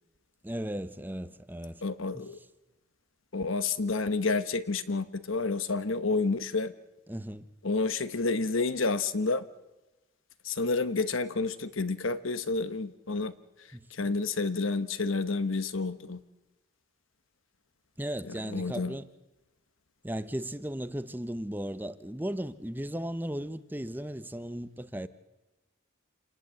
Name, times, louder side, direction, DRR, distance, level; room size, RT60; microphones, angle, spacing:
voice 1, 0.4-1.8 2.1-2.3 7.1-7.5 13.7-14.1 18.0-19.0 20.0-25.1, equal, 10° right, 0.7 m, -36 dB
voice 2, 1.8-2.4 3.3-6.7 7.6-9.4 10.4-13.3 14.0-16.2 18.2-18.9, left 3 dB, 70° left, 1.1 m, -29 dB
28.5 x 18.5 x 7.7 m
head